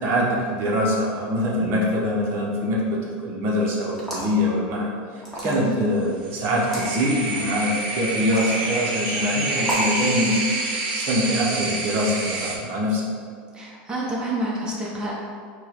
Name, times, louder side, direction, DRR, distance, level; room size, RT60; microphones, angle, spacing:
voice 1, 0.0-10.4 10.9-13.1, equal, 45° right, -3 dB, 0.8 m, -24 dB
sound 1, 3.9-4.4 5.2-5.8 6.6-6.9 8.1-8.6 9.6-10.0, equal, 5° left, 1.2 m, -31 dB
voice 2, 5.4-5.8 13.5-15.2, right 1 dB, 15° right, -5 dB, 0.9 m, -28 dB
sound 2, 6.2-12.6, right 2 dB, 75° right, 0.7 m, -28 dB
4.5 x 2.3 x 4.4 m, 2.1 s
supercardioid pair, 125°, 5 cm